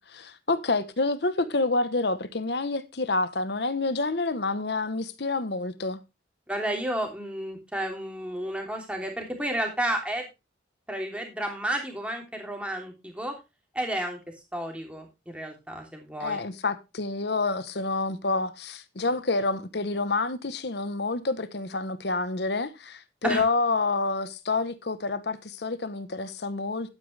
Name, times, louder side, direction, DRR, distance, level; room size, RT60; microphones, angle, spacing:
voice 1, 0.0-6.0 16.2-26.9, left 3 dB, 65° left, 1.0 m, -28 dB
voice 2, 6.5-10.2 10.9-13.3 13.7-14.2 14.5-16.4 23.2-23.4, right 1 dB, 5° right, 3.1 m, -31 dB
12.0 x 9.3 x 3.3 m
head